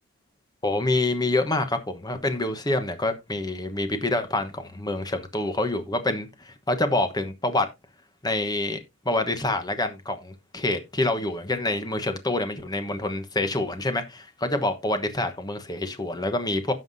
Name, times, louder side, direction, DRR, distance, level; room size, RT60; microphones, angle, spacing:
voice 1, 0.6-7.7 8.2-8.8 9.0-16.7, left 2 dB, 20° left, 1.1 m, -26 dB
16.5 x 5.8 x 2.7 m
head